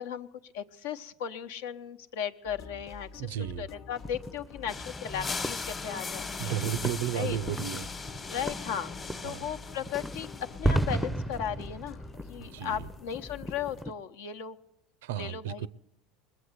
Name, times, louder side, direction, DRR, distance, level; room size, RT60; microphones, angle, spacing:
voice 1, 0.0-6.5 7.1-7.4 8.3-8.9 9.2-14.6 15.2-15.7, left 8 dB, 80° left, 8 dB, 0.9 m, -36 dB
sound 1, 2.4-13.8, left 5 dB, 45° left, 1.0 m, -48 dB
voice 2, 3.2-3.7 6.4-7.9 9.2-9.4 12.4-12.9 15.0-15.7, right 11 dB, 85° right, 19 dB, 0.5 m, -33 dB
sound 2, 4.0-13.9, right 1 dB, ahead, 0.5 m, -36 dB
sound 3, 4.7-10.9, left 4 dB, 25° left, 1.1 m, -39 dB
21.0 x 7.8 x 8.0 m, 0.84 s
supercardioid pair, 120°, 0 cm